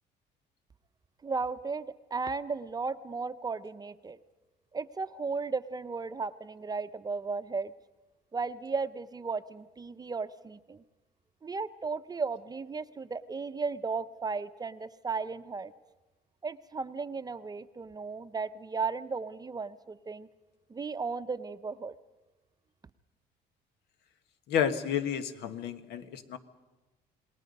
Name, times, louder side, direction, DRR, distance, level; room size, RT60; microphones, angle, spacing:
voice 1, 1.2-1.9 2.1-4.2 4.7-7.7 8.3-10.8 11.4-15.7 16.4-20.3 20.7-21.9, right 4 dB, 25° right, 11 dB, 0.7 m, -35 dB
voice 2, 24.5-26.4, left 8 dB, 85° left, 10 dB, 1.5 m, -31 dB
28.0 x 20.0 x 5.4 m, 1.1 s
cardioid pair, 110°, 17 cm